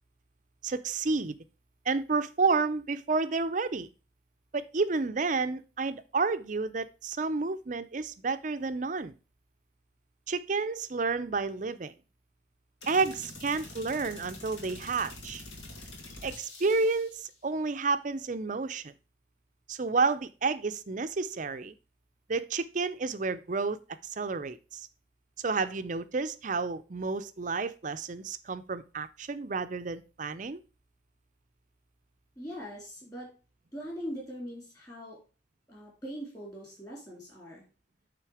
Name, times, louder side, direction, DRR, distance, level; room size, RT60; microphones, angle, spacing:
voice 1, 0.6-1.3 1.9-3.9 4.5-9.1 10.3-11.9 12.9-15.4 16.2-18.9 19.7-21.7 22.3-24.9 25.4-30.6, right 4 dB, 40° right, 12 dB, 0.5 m, -30 dB
sound 1, 12.8-17.3, left 2 dB, 80° left, 2.2 m, -46 dB
voice 2, 32.4-33.3 33.7-35.2 35.7-37.6, equal, 20° left, -3 dB, 3.5 m, -41 dB
9.0 x 3.8 x 4.9 m, 0.33 s
head